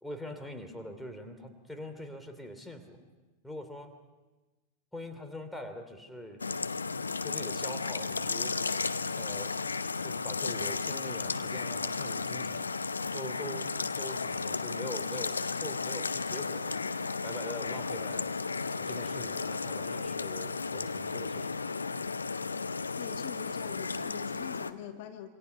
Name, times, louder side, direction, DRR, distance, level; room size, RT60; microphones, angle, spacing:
voice 1, 0.0-3.0 3.4-3.9 4.9-6.5 7.2-8.7 9.2-12.7 13.1-16.8 17.2-18.3 18.8-21.6, equal, ahead, 5 dB, 3.0 m, -43 dB
sound 1, 6.4-24.7, left 4 dB, 75° left, 0.8 m, -34 dB
voice 2, 23.0-25.3, left 10 dB, 50° left, 6 dB, 1.5 m, -43 dB
27.5 x 25.5 x 5.8 m, 1.2 s
figure-of-eight pair, 90°, 0 cm